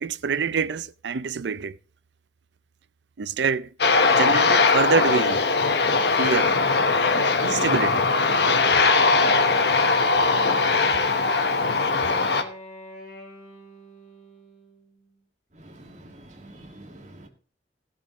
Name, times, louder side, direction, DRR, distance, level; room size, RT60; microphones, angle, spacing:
voice 1, 0.0-1.8 3.2-3.7 4.0-5.5 6.2-6.5 7.1-8.1, right 5 dB, 75° right, 0.5 m, -26 dB
Aircraft, 3.8-12.4, left 4 dB, 65° left, 1.1 m, -20 dB
Wind instrument woodwind instrument, 10.1-15.2, equal, 50° left, 3.7 m, -45 dB
voice 2, 15.6-17.3, right 1 dB, 40° right, 2.0 m, -46 dB
16.5 x 8.7 x 3.0 m
head